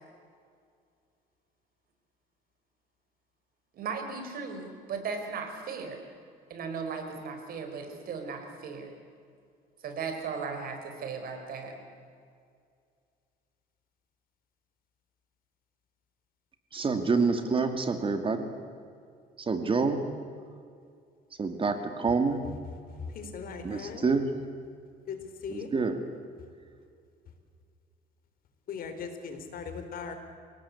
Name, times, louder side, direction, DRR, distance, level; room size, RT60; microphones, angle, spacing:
voice 1, 3.7-6.0 6.5-8.9 9.8-11.8, right 5 dB, 60° right, 5 dB, 4.8 m, -37 dB
voice 2, 16.7-18.5 19.4-20.0 21.4-22.5 23.6-24.3 25.7-26.0, right 4 dB, 30° right, 7 dB, 2.3 m, -27 dB
voice 3, 23.1-24.0 25.1-25.2 25.4-25.7 28.7-30.2, left 6 dB, 60° left, 7 dB, 4.0 m, -38 dB
28.0 x 18.0 x 8.5 m, 2.3 s
cardioid pair, 110°, 17 cm